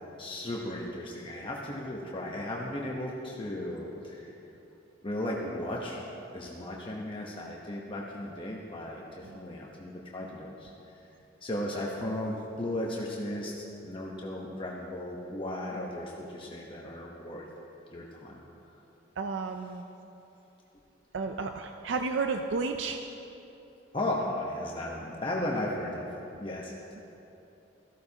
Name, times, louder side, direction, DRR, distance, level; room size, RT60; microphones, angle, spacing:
voice 1, 0.2-4.4 5.0-11.1 11.4-13.5 13.8-17.5 17.9-18.4 23.9-26.1 26.4-26.9, left 1 dB, 30° left, -3 dB, 1.0 m, -35 dB
voice 2, 19.2-19.8 21.1-23.0, right 4 dB, 85° right, 5 dB, 0.5 m, -32 dB
17.5 x 14.5 x 2.9 m, 3.0 s
head